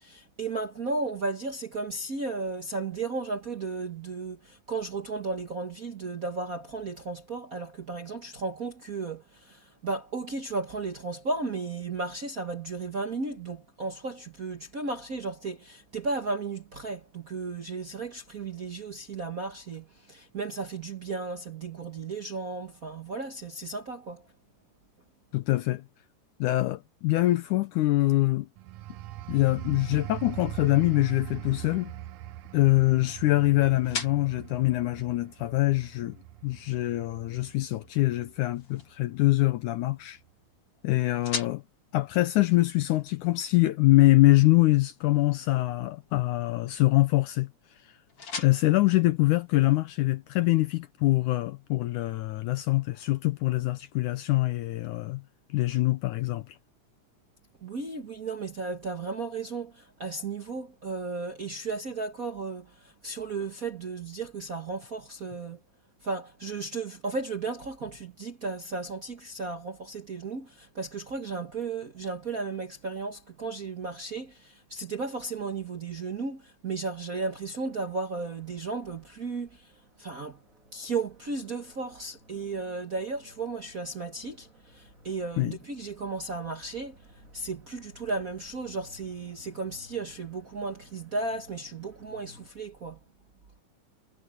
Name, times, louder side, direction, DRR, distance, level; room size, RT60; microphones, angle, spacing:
voice 1, 0.0-24.3 57.6-65.6 66.0-79.7 80.0-80.4 80.7-87.0 87.3-93.0, right 3 dB, 55° right, 1.0 m, -34 dB
voice 2, 25.3-25.8 26.4-28.5 29.3-31.9 32.5-36.2 36.4-40.2 40.8-41.6 41.9-47.5 48.4-55.2 55.5-56.5 85.4-85.5, left 18 dB, 75° left, 2.1 m, -24 dB
sound 1, 28.6-38.9 39.3-39.6, right 15 dB, 80° right, 1.5 m, -41 dB
sound 2, 31.2-50.0, left 5 dB, 45° left, 4.0 m, -45 dB
sound 3, 77.1-92.5, equal, 25° right, 3.4 m, -57 dB
omnidirectional pair, 3.8 m